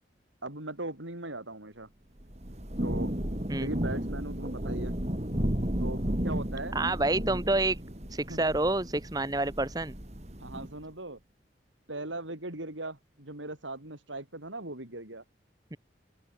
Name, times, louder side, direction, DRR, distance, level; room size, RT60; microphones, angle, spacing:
voice 1, 0.4-1.9 2.8-3.1 3.6-5.0 5.8-6.8 8.3-8.5 10.4-11.2 11.9-15.2, right 2 dB, 90° right, 6.6 m, -39 dB
Thunder / Rain, 2.2-10.8, equal, 35° right, 2.7 m, -33 dB
voice 2, 6.7-7.8 8.1-9.9 10.5-10.7 15.7-15.8, right 2 dB, 20° right, 1.2 m, -28 dB
open air
head